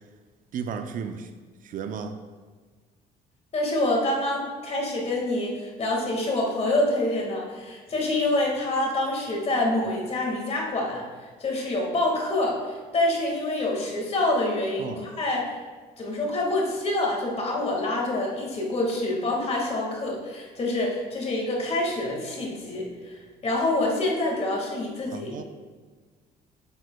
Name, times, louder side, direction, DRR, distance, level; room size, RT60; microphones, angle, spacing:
voice 1, 0.5-1.3 1.6-2.2 14.8-15.0 25.1-25.4, right 6 dB, 55° right, 7 dB, 0.5 m, -33 dB
voice 2, 3.5-11.0 11.4-15.6 16.0-25.4, left 2 dB, 40° left, -1 dB, 1.8 m, -26 dB
9.0 x 6.2 x 2.3 m, 1.5 s
cardioid pair, 110°, 17 cm